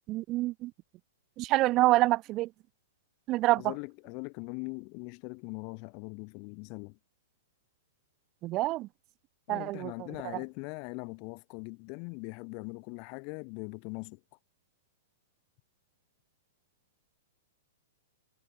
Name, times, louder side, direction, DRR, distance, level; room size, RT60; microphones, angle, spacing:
voice 1, 0.1-0.7 1.4-2.5 3.3-3.7 8.4-8.9 9.5-9.9, right 18 dB, 35° right, 0.6 m, -26 dB
voice 2, 3.6-7.0 9.5-14.2, left 38 dB, 40° left, 7.2 m, -41 dB
hypercardioid pair, 135°, 0 cm